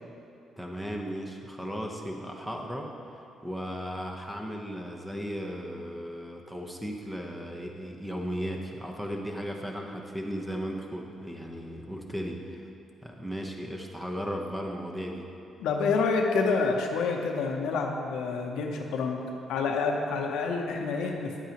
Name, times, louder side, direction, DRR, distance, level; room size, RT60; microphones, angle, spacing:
voice 1, 0.6-2.9 3.4-12.6 13.0-15.3, equal, 10° right, 1 dB, 1.0 m, -36 dB
voice 2, 15.6-19.2 19.5-21.4, left 4 dB, 85° left, 2 dB, 0.8 m, -28 dB
9.8 x 8.5 x 3.0 m, 2.7 s
cardioid pair, 90°, 0 cm